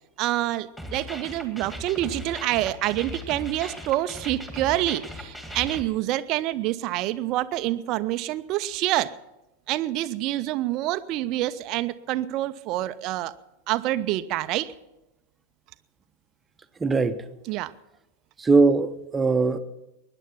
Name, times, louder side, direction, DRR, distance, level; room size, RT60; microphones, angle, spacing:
voice 1, 0.2-9.1 9.7-13.3 13.7-14.7 17.5-17.7, right 15 dB, 40° right, 0.5 m, -27 dB
sound 1, 0.8-5.8, equal, 5° left, 2.1 m, -38 dB
voice 2, 16.8-17.2 18.4-19.6, right 3 dB, 15° right, 0.8 m, -20 dB
21.5 x 10.0 x 5.8 m
figure-of-eight pair, 90°, 0 cm